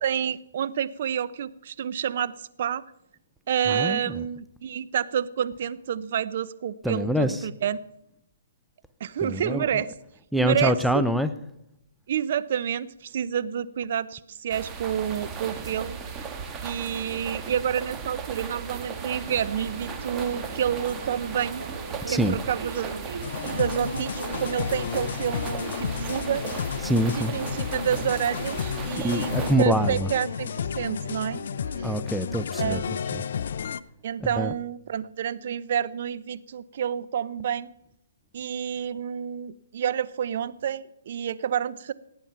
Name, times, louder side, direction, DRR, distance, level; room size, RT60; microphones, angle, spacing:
voice 1, 0.0-2.8 3.5-7.8 9.0-9.9 10.4-11.0 12.1-16.0 16.6-21.6 22.1-22.9 23.5-26.4 27.2-31.4 31.8-31.9 32.6-33.0 34.0-37.7 38.3-41.9, right 9 dB, 55° right, 16 dB, 0.7 m, -29 dB
voice 2, 3.7-4.3 6.8-7.5 9.2-9.8 10.3-11.3 22.1-22.4 26.8-27.3 29.0-30.1 31.8-32.8 33.1-33.2 34.2-34.6, equal, ahead, 10 dB, 0.6 m, -25 dB
sound 1, 14.5-29.6, right 5 dB, 20° right, 1.4 m, -37 dB
sound 2, 18.8-31.9, right 4 dB, 85° right, 2.1 m, -41 dB
sound 3, 23.2-33.8, left 7 dB, 60° left, 0.5 m, -32 dB
17.5 x 8.9 x 5.7 m, 0.82 s
hypercardioid pair, 145°, 0 cm